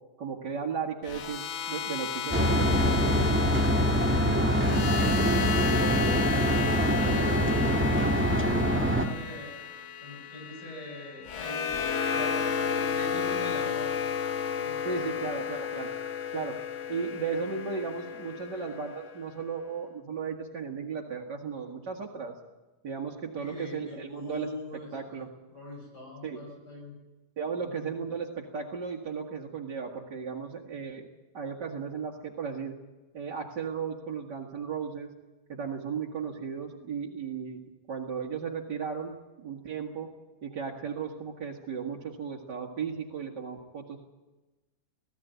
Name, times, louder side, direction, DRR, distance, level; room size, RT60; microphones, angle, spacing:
voice 1, 0.2-3.3 14.8-15.9 16.3-16.6 16.9-22.3 22.8-24.5 24.9-25.3 26.2-26.4 27.4-31.1 31.3-32.8 33.1-35.1 35.5-37.6 37.9-40.1 40.4-44.0, right 6 dB, 85° right, -2 dB, 2.5 m, -35 dB
sound 1, 1.0-19.2, left 7 dB, 50° left, 1.1 m, -33 dB
sound 2, 2.3-9.1, equal, 5° right, 1.6 m, -24 dB
voice 2, 3.6-9.5 10.0-11.8 12.1-14.1 14.4-14.8 15.2-15.3 23.4-26.9 27.6-27.8, left 1 dB, 75° left, -1 dB, 7.4 m, -43 dB
19.0 x 15.0 x 9.4 m, 1.1 s
omnidirectional pair, 1.8 m